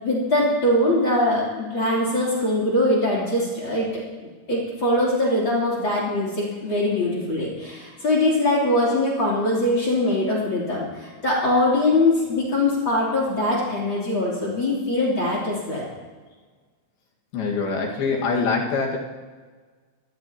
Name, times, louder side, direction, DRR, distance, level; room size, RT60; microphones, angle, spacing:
voice 1, 0.0-3.9 4.2-15.8, left 1 dB, 30° left, -4 dB, 3.7 m, -22 dB
voice 2, 17.3-19.0, left 4 dB, 70° left, -1 dB, 3.7 m, -24 dB
24.0 x 18.5 x 3.0 m, 1.4 s
omnidirectional pair, 4.7 m